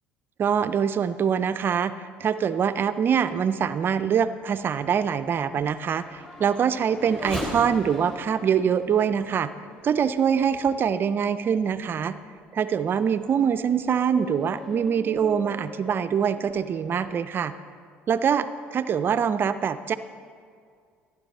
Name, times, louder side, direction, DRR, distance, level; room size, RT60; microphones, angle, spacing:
voice 1, 0.4-9.5 9.8-12.2 12.5-17.5 18.1-19.9, right 7 dB, 40° right, 12 dB, 0.4 m, -24 dB
Race car auto racing / Accelerating revving vroom, 4.3-11.0 11.6-11.7 12.3-17.1, left 1 dB, 20° left, 3.5 m, -41 dB
14.5 x 10.0 x 4.1 m, 2.2 s
hypercardioid pair, 70°, 5 cm